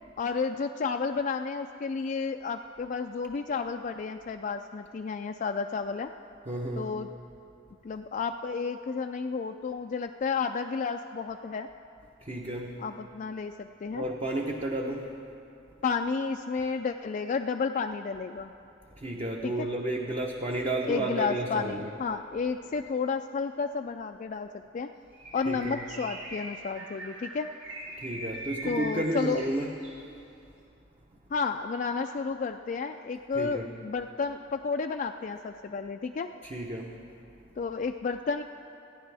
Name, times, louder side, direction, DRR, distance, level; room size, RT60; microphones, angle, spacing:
voice 1, 0.2-6.1 6.8-7.1 7.8-11.7 12.8-14.1 15.8-18.5 19.4-19.7 20.8-24.9 25.3-27.5 28.6-29.4 31.3-36.3 37.6-38.4, left 5 dB, 40° left, 5 dB, 0.3 m, -31 dB
voice 2, 6.5-6.9 12.2-12.8 13.9-15.1 19.0-21.9 25.5-25.8 28.0-29.7 33.4-33.7 36.4-37.0, right 1 dB, 30° right, 0 dB, 0.8 m, -32 dB
Bird, 25.1-30.0, right 1 dB, 90° right, 3.2 m, -42 dB
27.5 x 10.5 x 3.4 m, 2.7 s
head